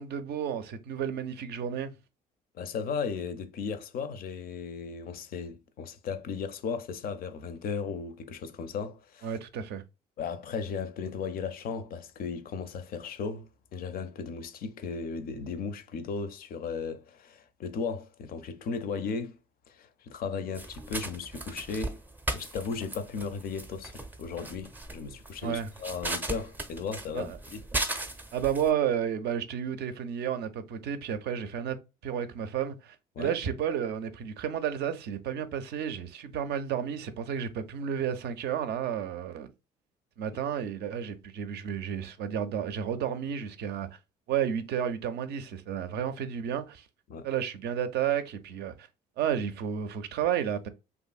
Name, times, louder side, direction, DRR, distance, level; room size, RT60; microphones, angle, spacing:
voice 1, 0.0-1.9 9.2-9.8 25.4-25.7 27.1-27.4 28.3-39.5 40.2-43.9 44.3-46.8 47.2-48.9 49.2-50.7, right 9 dB, 65° right, 0.4 m, -32 dB
voice 2, 2.5-9.3 10.2-19.4 19.7-22.0 22.3-27.6 33.2-33.3 47.1-47.3, left 5 dB, 55° left, 0.5 m, -36 dB
sound 1, 20.5-28.7, right 2 dB, 10° right, 0.5 m, -37 dB
2.6 x 2.5 x 2.3 m
supercardioid pair, 65°, 19 cm